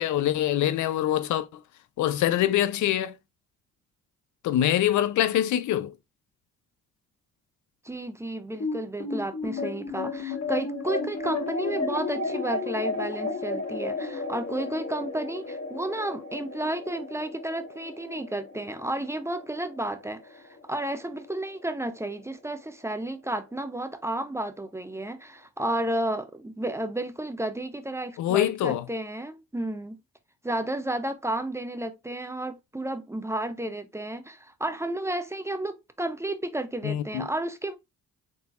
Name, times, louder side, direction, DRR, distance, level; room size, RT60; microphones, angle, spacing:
voice 1, 0.0-1.5 2.0-3.1 4.4-5.9 28.2-28.9 36.8-37.3, left 12 dB, 75° left, 0.5 m, -24 dB
voice 2, 7.8-30.0 30.4-37.8, right 1 dB, 10° right, 0.6 m, -32 dB
sound 1, 8.6-21.2, left 3 dB, 55° left, 2.3 m, -33 dB
3.9 x 3.9 x 2.4 m
cardioid pair, 90°, 30 cm